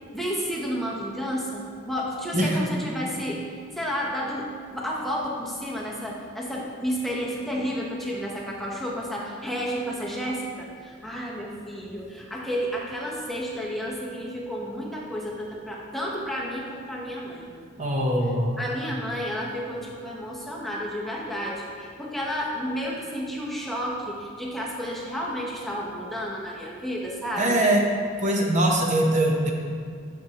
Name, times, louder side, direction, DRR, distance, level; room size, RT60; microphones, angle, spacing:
voice 1, 0.1-17.4 18.6-27.6, equal, ahead, -4 dB, 0.7 m, -31 dB
voice 2, 17.8-18.6 27.4-27.8 28.2-29.5, right 1 dB, 35° right, 0 dB, 0.7 m, -22 dB
9.2 x 6.1 x 2.9 m, 2.2 s
head